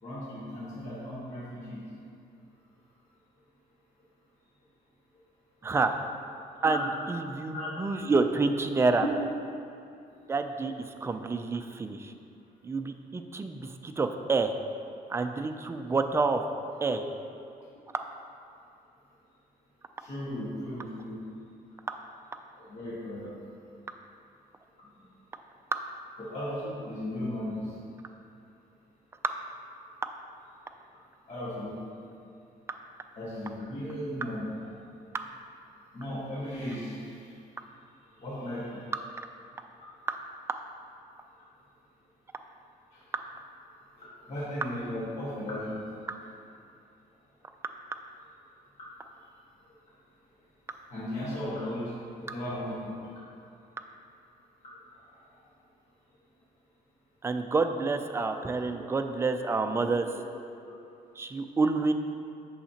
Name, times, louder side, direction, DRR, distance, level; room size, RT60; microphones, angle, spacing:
voice 1, 0.0-1.8 6.5-6.8 7.5-7.7 20.0-21.2 22.6-23.3 24.9-25.0 26.2-27.6 31.3-31.7 33.1-34.5 35.9-37.2 38.2-38.8 42.9-43.0 44.0-45.8 50.9-52.9 58.7-58.8, left 1 dB, 45° left, -9 dB, 1.6 m, -36 dB
voice 2, 5.6-6.0 6.6-9.1 10.3-12.1 12.6-14.5 15.1-16.4 16.8-17.0 25.7-25.8 29.2-29.3 35.1-35.3 40.1-40.2 40.5-40.6 57.2-60.1 61.2-61.9, right 3 dB, 15° right, 6 dB, 0.3 m, -28 dB
8.4 x 6.4 x 2.9 m, 2.6 s
cardioid pair, 145°, 16 cm